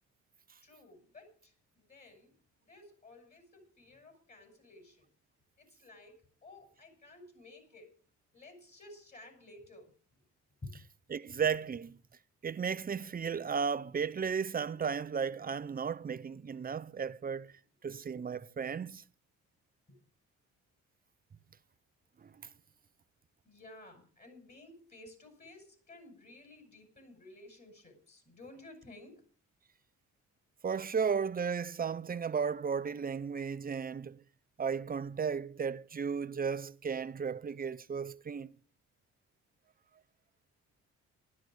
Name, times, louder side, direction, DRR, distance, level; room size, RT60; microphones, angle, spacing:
voice 1, 0.6-2.3 2.6-5.1 5.6-7.9 8.3-10.2 10.6-10.7 19.9-20.0 23.4-29.2, left 2 dB, 30° left, 6.0 m, -54 dB
voice 2, 11.1-12.0 12.4-17.5 17.8-19.0 22.2-22.3 30.6-34.2 34.6-38.5, right 6 dB, 30° right, 0.8 m, -34 dB
12.0 x 11.5 x 6.3 m
cardioid pair, 90°, 30 cm